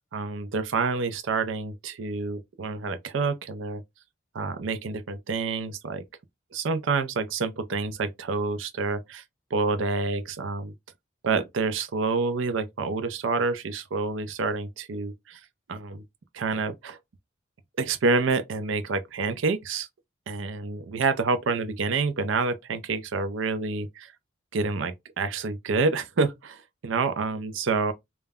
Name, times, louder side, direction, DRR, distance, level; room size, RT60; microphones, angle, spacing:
voice 1, 0.1-3.8 4.3-6.0 6.5-9.2 9.5-10.7 11.2-15.4 15.7-16.0 16.3-17.0 17.8-19.9 20.3-24.1 24.5-27.9, right 4 dB, 90° right, 0.5 m, -28 dB
2.2 x 2.0 x 3.4 m
head